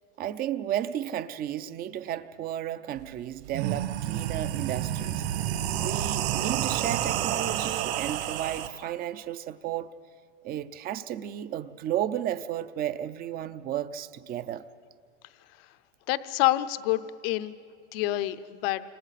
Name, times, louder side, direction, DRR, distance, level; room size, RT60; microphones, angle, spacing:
voice 1, 0.2-5.2 5.8-9.9 10.4-14.6, right 11 dB, 25° right, 0.5 m, -33 dB
sound 1, 3.0-3.1 3.4-8.7, right 11 dB, 60° right, 1.8 m, -29 dB
voice 2, 16.1-17.6 17.9-18.8, left 16 dB, 50° left, 0.8 m, -27 dB
29.0 x 27.0 x 4.1 m
supercardioid pair, 135°, 36 cm